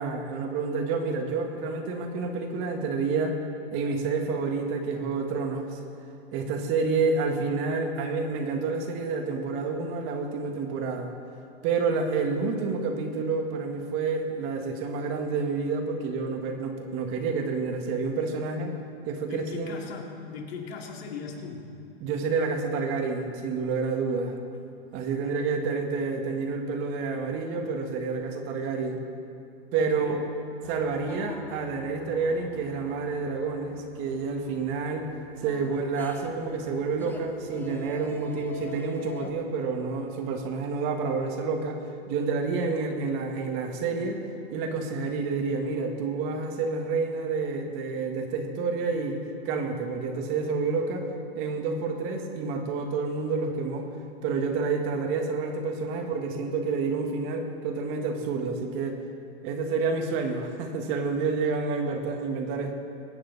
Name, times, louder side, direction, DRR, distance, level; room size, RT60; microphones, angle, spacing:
voice 1, 0.0-3.4 3.7-5.8 6.3-11.1 11.6-18.7 19.1-19.9 22.0-24.3 24.9-29.0 29.7-30.2 30.7-35.1 35.4-41.8 42.1-44.2 44.5-51.1 51.4-53.9 54.2-59.0 59.4-62.7, right 4 dB, 40° right, 3 dB, 1.8 m, -29 dB
voice 2, 19.2-21.7 29.7-30.2, left 5 dB, 70° left, 0 dB, 2.7 m, -39 dB
sound 1, 30.6-39.3, left 3 dB, 5° left, 0.4 m, -46 dB
23.0 x 9.9 x 4.1 m, 2.5 s
hypercardioid pair, 140°, 32 cm